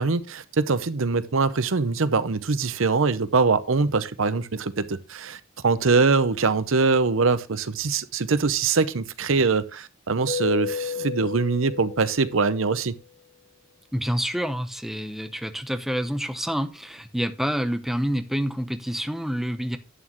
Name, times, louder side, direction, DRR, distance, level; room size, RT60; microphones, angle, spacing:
voice 1, 0.0-12.9, right 4 dB, 70° right, 0.8 m, -23 dB
Keyboard (musical), 10.3-12.8, left 6 dB, 65° left, 2.0 m, -32 dB
voice 2, 13.9-19.8, equal, ahead, 0.8 m, -28 dB
11.0 x 8.6 x 3.0 m
head